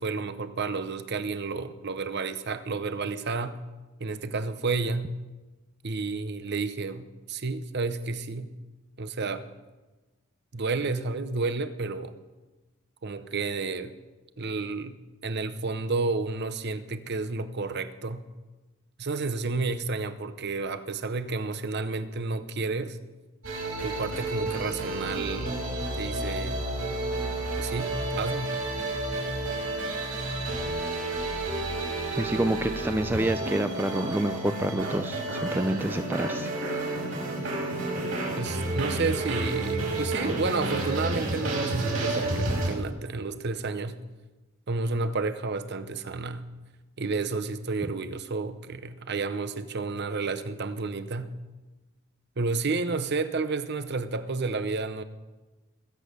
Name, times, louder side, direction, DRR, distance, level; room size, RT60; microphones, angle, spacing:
voice 1, 0.0-3.6 4.0-5.1 5.8-8.5 9.0-9.5 10.5-12.1 13.0-13.9 14.4-15.0 15.2-18.2 19.0-23.0 23.8-25.6 26.0-26.6 27.6-28.5 38.3-44.0 44.7-46.4 47.0-51.3 52.4-55.0, right 3 dB, 55° right, 12 dB, 0.9 m, -31 dB
sound 1, 23.4-42.7, right 2 dB, 70° right, 5.7 m, -31 dB
voice 2, 32.2-36.5, right 1 dB, 10° right, 9 dB, 0.4 m, -28 dB
21.0 x 8.2 x 6.7 m, 1.2 s
head